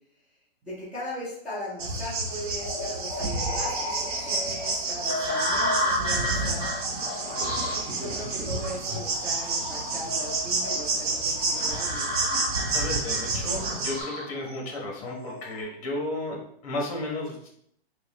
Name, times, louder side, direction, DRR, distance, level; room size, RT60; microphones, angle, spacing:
voice 1, 0.6-6.7 7.9-12.1, left 1 dB, ahead, -13 dB, 0.5 m, -39 dB
sound 1, 1.8-14.0, right 3 dB, 50° right, 0.8 m, -30 dB
sound 2, 2.6-15.6, left 1 dB, 20° right, 1.0 m, -33 dB
voice 2, 12.7-17.5, left 2 dB, 35° left, 0 dB, 1.2 m, -33 dB
4.9 x 2.4 x 3.0 m, 0.68 s
hypercardioid pair, 150°, 31 cm